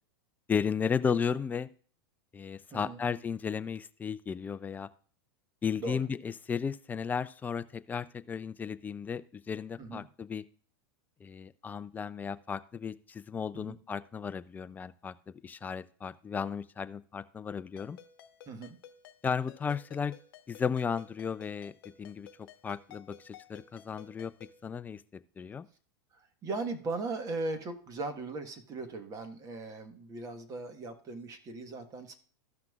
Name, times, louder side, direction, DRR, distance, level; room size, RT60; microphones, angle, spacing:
voice 1, 0.5-1.7 2.3-4.9 5.6-10.4 11.2-18.0 19.2-20.1 20.5-21.7 22.0-24.3 24.6-25.7, left 6 dB, 15° left, 14 dB, 0.3 m, -34 dB
voice 2, 2.7-3.0 5.8-6.0 9.8-10.1 13.5-13.8 18.5-18.8 26.1-32.1, right 3 dB, 30° right, 8 dB, 1.3 m, -38 dB
Ringtone, 17.8-24.6, left 9 dB, 70° left, 0.9 m, -55 dB
14.5 x 5.9 x 2.4 m, 0.42 s
supercardioid pair, 130°, 12 cm